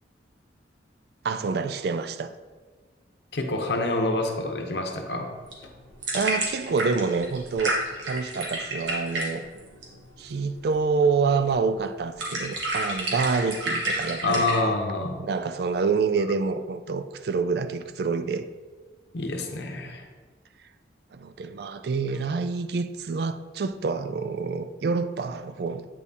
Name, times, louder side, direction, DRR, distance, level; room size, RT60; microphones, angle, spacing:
voice 1, 1.2-2.3 6.1-7.8 8.0-9.4 10.2-14.4 15.2-18.5 21.1-25.9, right 4 dB, 60° right, 0.3 m, -27 dB
voice 2, 3.3-5.3 14.2-15.2 19.1-20.0, left 2 dB, 65° left, 0.8 m, -27 dB
sound 1, 5.3-14.6, right 1 dB, 90° right, 1.4 m, -31 dB
8.3 x 4.1 x 3.6 m
head